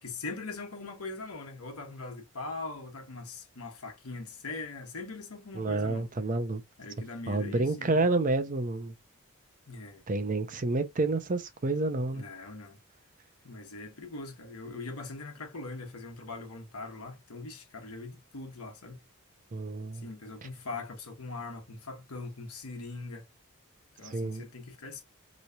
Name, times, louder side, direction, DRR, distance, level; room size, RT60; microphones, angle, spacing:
voice 1, 0.0-6.1 6.8-8.0 9.7-10.0 12.1-12.8 13.4-19.0 19.9-23.2 24.0-25.0, left 3 dB, 80° left, 1.1 m, -41 dB
voice 2, 5.5-6.6 7.3-8.9 10.1-12.3 19.5-20.1 24.0-24.4, right 2 dB, 35° right, 0.5 m, -29 dB
3.3 x 3.1 x 2.7 m
head